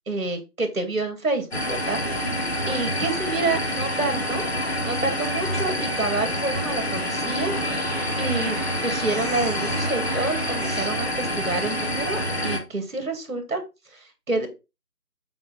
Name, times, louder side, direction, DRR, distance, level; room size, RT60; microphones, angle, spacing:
voice 1, 0.1-2.0 2.7-4.4 4.8-14.5, right 3 dB, 60° right, 6 dB, 2.3 m, -28 dB
sound 1, 1.5-12.6, equal, 45° left, 2.0 m, -27 dB
sound 2, 7.2-11.0, right 1 dB, 25° left, 0.9 m, -36 dB
7.7 x 4.4 x 4.0 m, 0.26 s
figure-of-eight pair, 170°, 45 cm